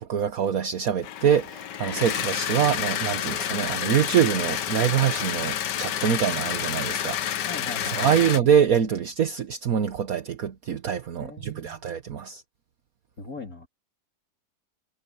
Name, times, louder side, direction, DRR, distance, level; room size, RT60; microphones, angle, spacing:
voice 1, 0.0-7.5 7.9-12.4, right 8 dB, 60° right, 1.5 m, -24 dB
sound 1, 1.0-8.4, left 10 dB, 85° left, 1.6 m, -29 dB
voice 2, 7.5-8.3 11.2-11.9 13.2-13.7, left 3 dB, 55° left, 3.4 m, -40 dB
omnidirectional pair, 1.8 m